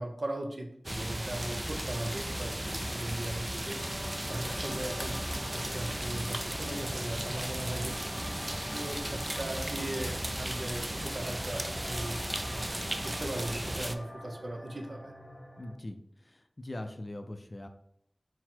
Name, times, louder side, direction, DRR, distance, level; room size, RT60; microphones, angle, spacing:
voice 1, 0.0-3.8 4.3-5.2 5.5-8.0 8.7-12.7 13.0-15.1, right 1 dB, 60° right, 3 dB, 0.6 m, -38 dB
sound 1, 0.8-13.9, right 1 dB, 20° right, 0.3 m, -35 dB
sound 2, 3.7-15.7, equal, 20° left, 0.9 m, -47 dB
voice 2, 15.6-17.7, left 1 dB, 50° left, 7 dB, 0.4 m, -42 dB
4.0 x 2.1 x 4.4 m, 0.70 s
wide cardioid pair, 45°, 0 cm